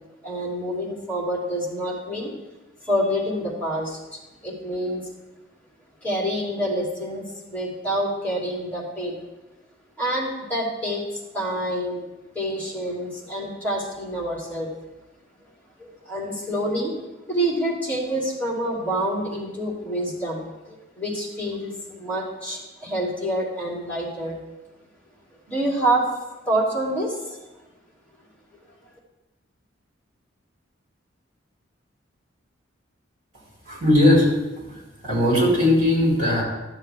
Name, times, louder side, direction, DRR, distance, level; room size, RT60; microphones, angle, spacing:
voice 1, 0.2-2.3 2.8-5.0 6.0-9.2 10.0-11.0 11.3-12.1 12.3-14.7 15.8-16.9 17.3-24.4 25.5-26.0 26.5-27.4, right 1 dB, 10° left, -5 dB, 2.8 m, -27 dB
voice 2, 33.7-34.3 34.7-34.8 35.0-36.4, left 1 dB, 45° right, -4 dB, 3.7 m, -18 dB
12.0 x 7.2 x 3.4 m, 1.1 s
head